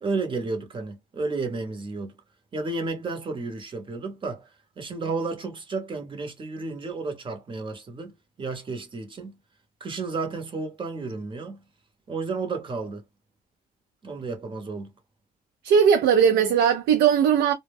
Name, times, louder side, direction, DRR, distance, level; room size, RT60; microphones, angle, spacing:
voice 1, 0.0-2.1 2.5-4.5 4.8-9.4 9.8-11.6 12.1-13.0 14.0-14.9, right 3 dB, 30° right, 0.9 m, -32 dB
voice 2, 15.6-17.5, right 7 dB, 75° right, 0.5 m, -19 dB
2.1 x 2.1 x 3.4 m
cardioid pair, 110°, 17 cm